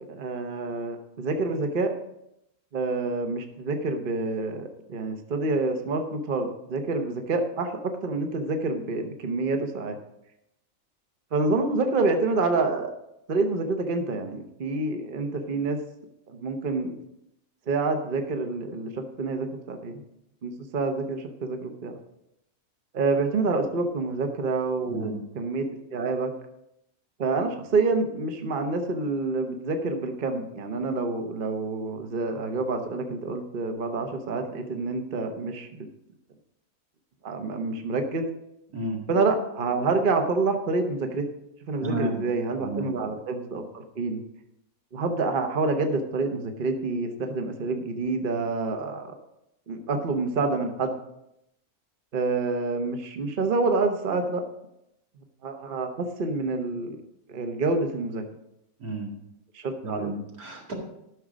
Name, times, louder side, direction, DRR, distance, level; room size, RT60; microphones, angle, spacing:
voice 1, 0.1-1.9 2.7-10.0 11.3-12.9 13.3-15.8 16.3-17.0 17.7-20.0 20.4-22.0 22.9-26.3 27.2-35.9 37.2-38.3 39.1-41.2 41.7-44.2 44.9-49.1 49.7-51.0 52.1-54.4 55.4-57.0 57.3-58.2 59.5-60.1, right 3 dB, 40° right, 5 dB, 1.1 m, -27 dB
voice 2, 24.9-25.2 38.7-39.0 41.8-42.2 42.6-42.9 58.8-59.1 59.8-60.7, right 2 dB, 85° right, -1 dB, 2.6 m, -31 dB
13.0 x 6.2 x 5.1 m, 0.82 s
omnidirectional pair, 1.5 m